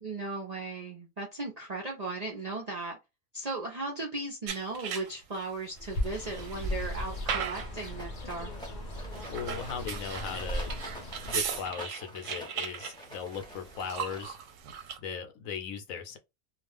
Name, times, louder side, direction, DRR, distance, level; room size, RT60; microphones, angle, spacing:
voice 1, 0.0-3.0 3.3-8.5, right 3 dB, 50° right, 0.4 m, -37 dB
sound 1, 4.5-5.4 5.9-7.9 9.0-15.0, right 7 dB, 70° right, 0.9 m, -38 dB
Bird, 5.8-11.7, left 1 dB, 45° left, 0.6 m, -37 dB
Rattle, 7.9-14.6, equal, 5° left, 0.6 m, -47 dB
voice 2, 9.3-10.7 11.2-14.4 15.0-16.2, left 7 dB, 75° left, 1.0 m, -38 dB
2.4 x 2.3 x 3.3 m
omnidirectional pair, 1.5 m